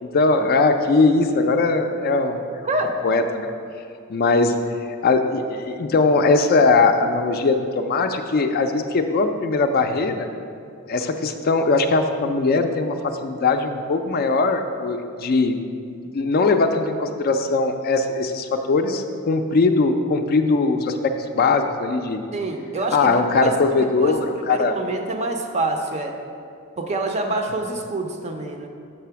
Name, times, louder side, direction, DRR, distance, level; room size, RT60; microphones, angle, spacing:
voice 1, 0.0-2.4 3.0-3.5 4.1-10.3 10.9-15.6 15.9-22.2 22.9-24.7, left 3 dB, 45° left, 6 dB, 0.3 m, -20 dB
voice 2, 2.6-3.0 22.3-23.5 23.8-26.2 26.8-28.7, right 2 dB, 30° right, 4 dB, 0.5 m, -26 dB
6.7 x 4.1 x 5.7 m, 2.5 s
head